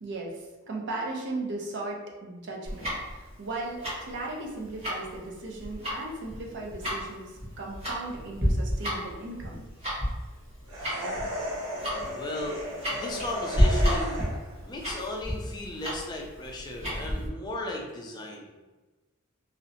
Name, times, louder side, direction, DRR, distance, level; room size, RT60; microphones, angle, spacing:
voice 1, 0.0-9.6, right 2 dB, 50° right, 0 dB, 0.5 m, -37 dB
Tick-tock, 2.6-17.3, equal, 30° right, 1.0 m, -30 dB
sound 1, 10.7-14.5, equal, 85° right, 0.8 m, -35 dB
voice 2, 12.1-12.6 12.9-14.2 14.6-18.5, left 1 dB, 20° left, -1 dB, 0.3 m, -36 dB
2.7 x 2.1 x 2.6 m, 1.2 s
head